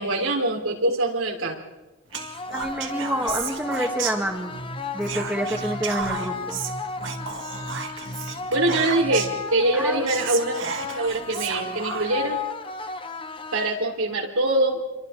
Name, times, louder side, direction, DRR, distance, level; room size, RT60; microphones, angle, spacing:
voice 1, 0.0-1.6 8.5-10.7 11.0-12.4 13.5-14.8, right 2 dB, 85° right, 1 dB, 3.7 m, -23 dB
sound 1, 2.1-14.1, left 4 dB, 25° left, 1.0 m, -34 dB
Whispering, 2.1-4.6 5.0-9.4 9.8-9.9 10.1-12.3, right 6 dB, 60° right, 2.0 m, -33 dB
voice 2, 2.5-4.6 4.9-6.6 9.7-10.1, right 1 dB, 5° right, 1 dB, 2.1 m, -28 dB
sound 2, 4.2-9.3, right 1 dB, 40° left, 3.3 m, -37 dB
28.0 x 23.5 x 4.3 m, 1.0 s
head